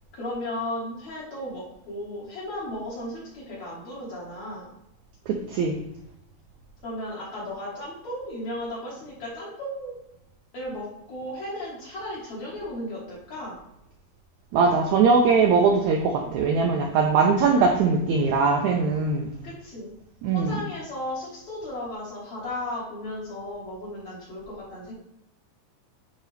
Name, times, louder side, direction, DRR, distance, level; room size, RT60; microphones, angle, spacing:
voice 1, 0.1-4.7 6.8-10.0 10.5-13.6 16.2-16.4 19.4-19.9 20.3-24.9, left 1 dB, 55° left, -7 dB, 2.7 m, -35 dB
voice 2, 5.3-5.7 14.5-19.3 20.2-20.6, right 4 dB, 80° right, 2 dB, 1.7 m, -21 dB
9.4 x 3.7 x 3.4 m, 0.83 s
omnidirectional pair, 4.0 m